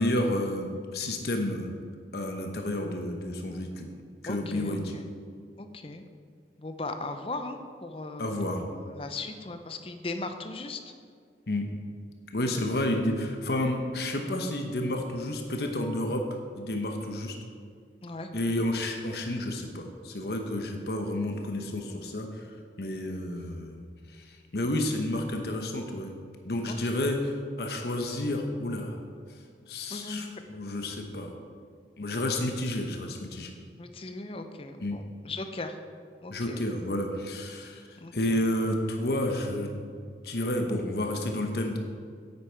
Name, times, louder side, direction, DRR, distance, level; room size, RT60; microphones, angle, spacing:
voice 1, 0.0-1.7 2.1-3.9 4.2-4.9 8.2-8.6 11.5-11.7 12.3-16.2 16.6-17.3 18.3-22.5 22.8-23.8 24.1-26.1 26.5-29.0 29.7-31.3 32.0-33.5 34.8-35.0 36.3-39.9 40.2-41.8, left 1 dB, 60° left, 3 dB, 0.9 m, -30 dB
voice 2, 4.3-5.0 5.6-6.1 6.6-7.6 7.8-8.3 8.7-10.9 12.4-12.5 18.0-18.3 26.7-26.8 29.9-30.2 33.8-35.8 36.2-36.6 38.0-38.4, left 2 dB, 30° left, 7 dB, 0.7 m, -38 dB
9.7 x 8.5 x 4.5 m, 2.1 s
head